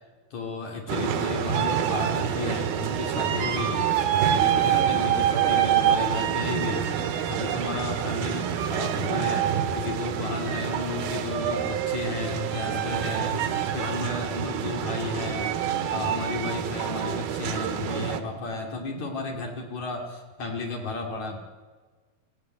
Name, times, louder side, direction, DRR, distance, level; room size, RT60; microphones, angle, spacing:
voice 1, 0.3-3.9 4.3-6.9 7.3-9.5 9.7-15.6 15.9-21.4, left 3 dB, 50° left, 1 dB, 3.6 m, -33 dB
sound 1, 0.9-18.2, right 9 dB, 75° right, 3.2 m, -26 dB
23.5 x 17.5 x 9.1 m, 1.4 s
omnidirectional pair, 4.4 m